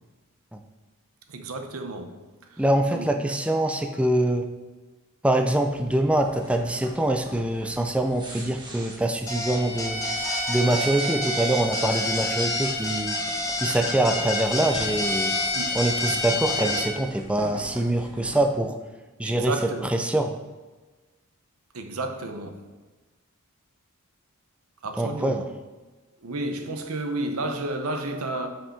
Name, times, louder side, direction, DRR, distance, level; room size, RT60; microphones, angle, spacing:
voice 1, 1.3-2.2 2.5-2.6 2.9-3.1 15.5-15.7 19.2-19.9 21.7-22.6 24.8-25.5 26.2-28.5, right 2 dB, 80° right, 0.8 m, -31 dB
voice 2, 2.6-4.5 5.2-10.0 10.5-13.2 13.6-15.4 15.7-18.8 19.2-20.3 25.0-25.5, right 1 dB, 5° right, 0.4 m, -24 dB
sound 1, 5.7-18.4, right 1 dB, 20° right, 1.4 m, -44 dB
sound 2, 9.3-16.8, left 1 dB, 15° left, 1.1 m, -30 dB
Bowed string instrument, 9.5-16.9, left 2 dB, 55° left, 1.6 m, -31 dB
5.6 x 5.3 x 5.7 m
head